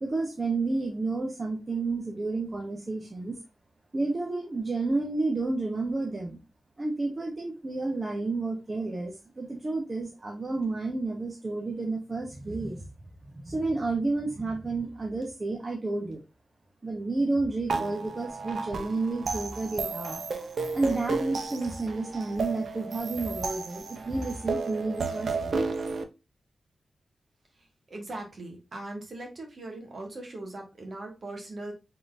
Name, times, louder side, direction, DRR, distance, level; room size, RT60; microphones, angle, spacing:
voice 1, 0.0-3.4 3.9-6.4 6.8-12.9 13.4-16.2 16.8-20.2 20.7-25.6, right 3 dB, 35° right, 0 dB, 0.9 m, -31 dB
sound 1, 17.7-26.0, right 4 dB, 70° right, 0.6 m, -33 dB
voice 2, 27.9-31.7, right 2 dB, 50° right, 2 dB, 1.5 m, -40 dB
3.7 x 3.7 x 2.5 m, 0.26 s
wide cardioid pair, 100°, 0 cm